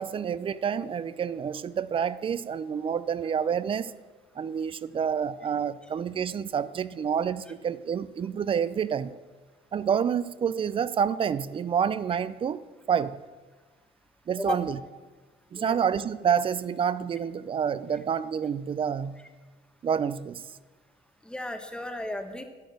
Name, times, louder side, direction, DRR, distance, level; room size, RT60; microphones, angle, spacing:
voice 1, 0.0-3.9 4.4-9.1 9.7-13.2 14.3-14.8 15.5-19.3 19.8-20.5, right 7 dB, 30° right, 17 dB, 0.4 m, -28 dB
voice 2, 21.2-22.4, left 1 dB, 5° left, 7 dB, 1.0 m, -34 dB
11.5 x 4.2 x 7.7 m, 1.3 s
cardioid pair, 110°, 17 cm